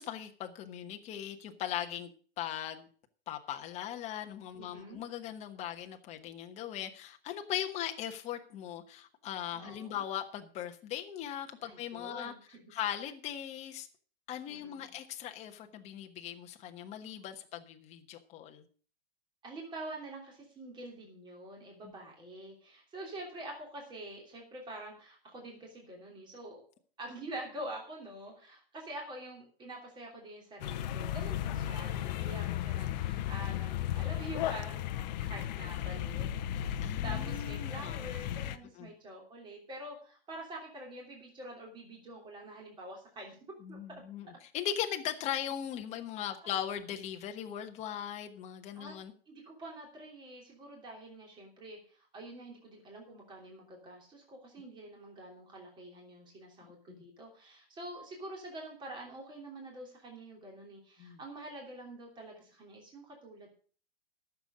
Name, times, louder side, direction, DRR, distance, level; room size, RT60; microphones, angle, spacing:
voice 1, 0.0-2.1 2.4-2.9 3.3-12.3 12.7-13.9 14.3-18.6 21.8-21.9 36.8-38.0 38.8-38.9 43.6-49.1 56.6-57.1 61.0-61.2, left 10 dB, 25° left, 5 dB, 1.2 m, -39 dB
voice 2, 4.6-5.0 9.5-10.0 11.6-12.7 14.5-14.9 19.4-26.6 27.0-34.9 35.2-36.4 37.0-43.4 43.7-44.0 48.7-49.0 49.3-63.6, right 1 dB, 15° right, 0 dB, 3.1 m, -46 dB
sound 1, 30.6-38.6, left 11 dB, 45° left, 0.9 m, -35 dB
12.0 x 7.2 x 6.4 m, 0.43 s
hypercardioid pair, 150°, 29 cm